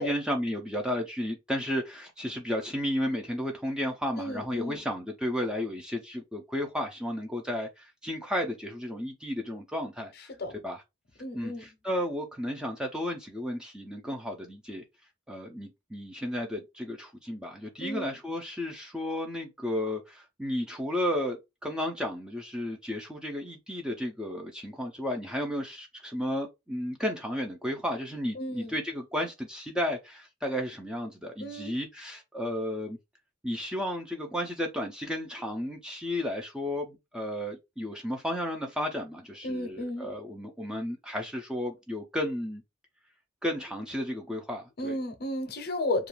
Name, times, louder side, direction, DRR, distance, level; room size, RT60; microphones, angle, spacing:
voice 1, 0.0-10.3 10.6-10.8 11.3-14.8 15.3-33.0 33.4-42.6 43.4-45.0, left 1 dB, 5° right, 0.3 m, -33 dB
voice 2, 4.2-4.8 10.4-10.5 11.2-11.7 17.8-18.1 28.4-28.7 31.4-31.7 39.4-40.1 44.8-46.1, left 1 dB, 50° left, 0.6 m, -33 dB
2.4 x 2.2 x 3.0 m
head